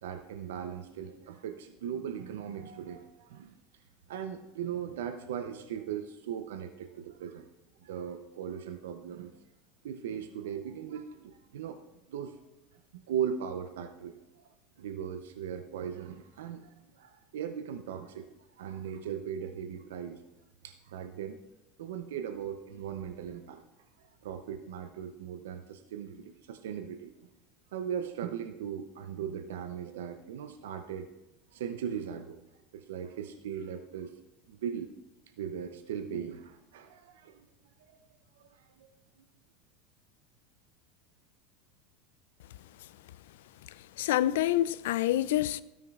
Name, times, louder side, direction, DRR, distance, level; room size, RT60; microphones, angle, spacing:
voice 1, 0.0-3.5 4.1-7.5 7.8-9.3 9.8-11.8 12.1-12.4 12.9-14.4 14.8-20.2 20.6-21.4 21.8-23.6 24.0-27.3 27.7-31.1 31.5-32.4 32.7-34.1 34.5-34.9 35.4-37.4 37.9-38.0 38.5-38.9, right 8 dB, 80° right, 0.5 m, -38 dB
voice 2, 44.0-45.6, left 13 dB, 75° left, 0.3 m, -27 dB
12.5 x 9.2 x 2.4 m
hypercardioid pair, 100°, 0 cm